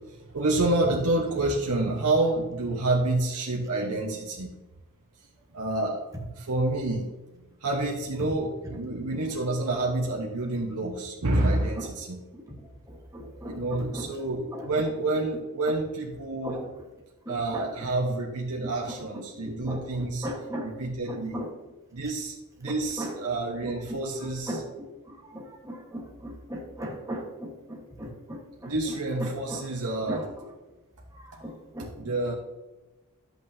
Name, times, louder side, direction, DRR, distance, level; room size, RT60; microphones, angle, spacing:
voice 1, 0.0-4.5 5.5-6.0 6.4-12.2 13.4-16.6 17.3-20.3 20.6-21.3 21.9-24.6 28.6-30.2 32.0-32.3, right 2 dB, 90° right, -1 dB, 1.1 m, -28 dB
voice 2, 12.3-14.1 14.5-14.9 16.4-16.8 17.2-17.7 18.6-20.7 21.1-21.5 22.6-22.7 23.0-23.2 23.6-29.7 30.1-30.5 31.1-32.2, equal, 15° right, -1 dB, 1.3 m, -38 dB
10.5 x 8.2 x 2.7 m, 1.1 s
head